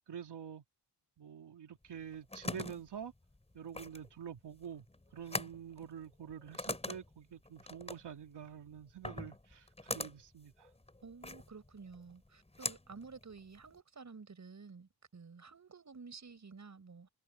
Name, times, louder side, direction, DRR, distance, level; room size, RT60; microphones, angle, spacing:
voice 1, 0.1-0.6 1.2-3.1 3.5-4.8 5.1-10.7, right 8 dB, 70° right, 3.2 m, -47 dB
sound 1, 1.9-13.8, left 2 dB, 15° left, 4.7 m, -44 dB
voice 2, 11.0-17.1, right 5 dB, 40° right, 7.3 m, -52 dB
cardioid pair, 100°, 43 cm